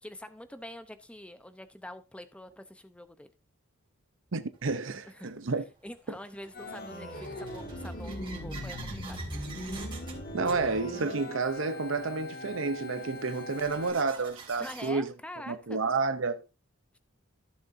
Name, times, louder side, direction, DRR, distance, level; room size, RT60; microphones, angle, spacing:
voice 1, 0.0-3.3 5.0-5.3 5.8-9.2 14.6-15.8, left 1 dB, 5° left, 0.7 m, -45 dB
voice 2, 4.3-5.6 10.3-15.1 15.5-16.4, right 4 dB, 65° right, 0.7 m, -30 dB
sound 1, 4.5-4.6 5.5-14.9, right 4 dB, 25° right, 3.7 m, -49 dB
Organ, 6.5-13.9, left 1 dB, 45° left, 2.0 m, -40 dB
16.0 x 6.9 x 2.7 m
head